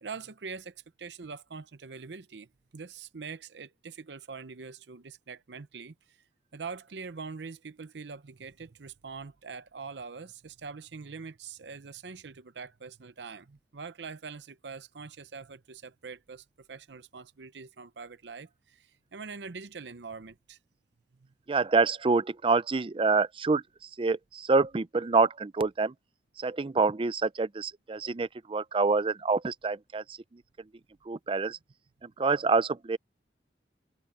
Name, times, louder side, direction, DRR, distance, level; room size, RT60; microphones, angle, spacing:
voice 1, 0.0-6.2 6.5-20.6 21.2-21.3, right 5 dB, 75° right, 0.7 m, -43 dB
voice 2, 21.5-23.6 24.0-25.9 26.4-30.2 31.1-31.6 32.0-33.0, right 4 dB, 30° right, 0.5 m, -26 dB
head